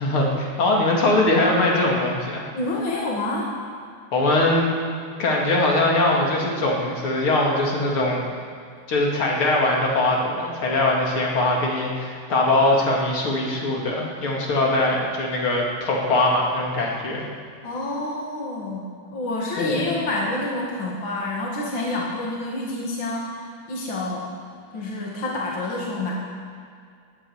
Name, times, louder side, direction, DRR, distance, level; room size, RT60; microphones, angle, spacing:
voice 1, 0.0-2.4 4.1-4.7 5.2-8.3 8.9-17.3 19.6-19.9, left 2 dB, 85° left, -2 dB, 3.4 m, -21 dB
voice 2, 2.5-3.5 17.6-18.8 19.1-24.3 24.7-26.1, left 2 dB, 65° left, -3 dB, 2.8 m, -28 dB
18.5 x 8.8 x 8.0 m, 2.2 s
omnidirectional pair, 2.3 m